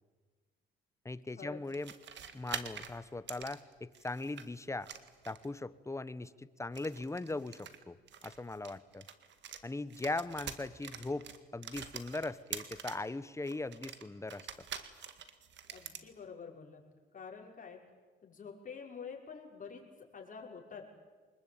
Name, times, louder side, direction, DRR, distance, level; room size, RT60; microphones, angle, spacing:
voice 1, 1.0-1.9 2.3-4.9 5.2-8.0 8.2-9.1 9.6-11.3 11.5-14.5, left 2 dB, 15° left, 15 dB, 1.1 m, -39 dB
sound 1, 1.7-4.5 4.8-5.6 6.6-9.6 9.9-13.1 13.5-16.1, right 8 dB, 65° right, 2.0 m, -46 dB
voice 2, 15.7-16.8 17.1-17.8 18.2-19.8 20.1-20.9, left 6 dB, 40° left, -1 dB, 5.9 m, -47 dB
24.5 x 21.0 x 8.9 m, 1.4 s
cardioid pair, 90°, 20 cm